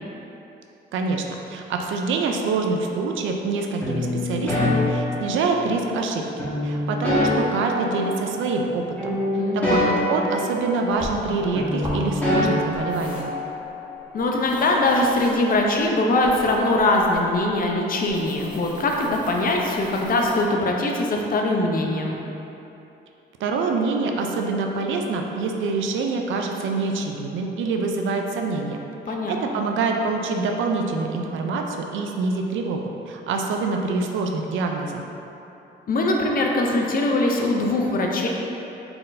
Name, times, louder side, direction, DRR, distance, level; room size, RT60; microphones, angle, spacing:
voice 1, 0.9-9.2 9.5-13.3 23.4-28.8 29.3-35.0, right 3 dB, 80° right, 2 dB, 0.5 m, -26 dB
sound 1, 3.8-5.8 6.4-8.7 9.0-11.3 11.6-13.6, left 1 dB, 10° left, 1.4 m, -25 dB
voice 2, 9.3-10.0 14.1-22.2 29.1-29.5 35.9-38.3, left 2 dB, 45° left, 0 dB, 0.6 m, -22 dB
sound 2, 11.0-20.4, equal, 25° right, 1.1 m, -39 dB
4.3 x 3.8 x 2.6 m, 2.9 s
cardioid pair, 90°, 20 cm